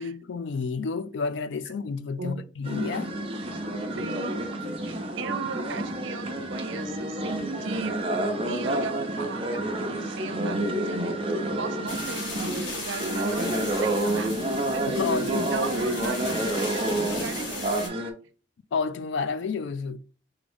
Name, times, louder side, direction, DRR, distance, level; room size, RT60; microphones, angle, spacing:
voice 1, 0.0-3.1 14.9-15.5 18.7-20.0, left 5 dB, 70° left, 0.4 m, -30 dB
sound 1, 2.6-18.1, right 1 dB, 30° right, 0.7 m, -29 dB
voice 2, 4.0-4.4 4.9-8.0 8.4-14.3 14.7-15.0 15.3-18.0, right 3 dB, 85° right, 0.6 m, -36 dB
sound 2, 11.9-17.9, left 2 dB, 90° left, 1.8 m, -37 dB
3.7 x 3.5 x 3.5 m
head